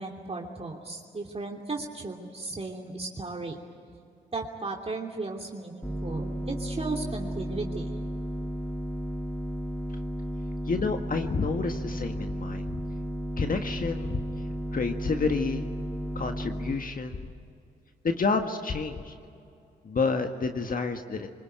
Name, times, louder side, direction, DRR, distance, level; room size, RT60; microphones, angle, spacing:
voice 1, 0.0-3.6 4.3-7.9, right 3 dB, 35° right, 1 dB, 3.0 m, -35 dB
sound 1, 5.8-16.7, right 1 dB, 10° left, 2.4 m, -33 dB
voice 2, 10.7-12.8 13.4-14.2 14.7-15.7 16.1-17.3 18.0-19.1 19.8-21.3, left 4 dB, 50° left, 5 dB, 1.6 m, -29 dB
24.5 x 21.5 x 9.2 m, 2.4 s
supercardioid pair, 50°, 19 cm